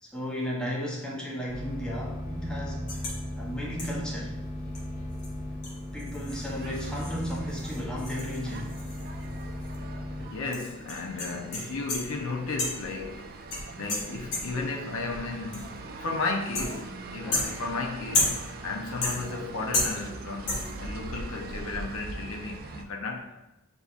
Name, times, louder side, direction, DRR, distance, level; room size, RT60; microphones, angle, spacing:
voice 1, 0.0-2.9 3.4-4.4 5.9-8.8 17.2-17.6, equal, 5° left, -4 dB, 0.7 m, -35 dB
sound 1, 1.5-10.3, left 1 dB, 15° right, 1.2 m, -36 dB
sound 2, 2.9-3.2 3.8-4.1 4.7-4.8 5.2-5.3 5.6-9.4 9.7-9.8 10.5-12.2 12.6-13.0 13.5-14.7 15.5-15.9 16.5-17.0 17.3-18.6 19.0-19.5 19.7-20.2 20.5-20.9, left 2 dB, 85° left, 1.0 m, -32 dB
sound 3, 6.3-22.8, right 3 dB, 40° right, 0.3 m, -43 dB
voice 2, 10.2-13.3 13.8-23.4, left 3 dB, 65° left, 1 dB, 0.5 m, -34 dB
6.8 x 2.7 x 2.4 m, 0.90 s
head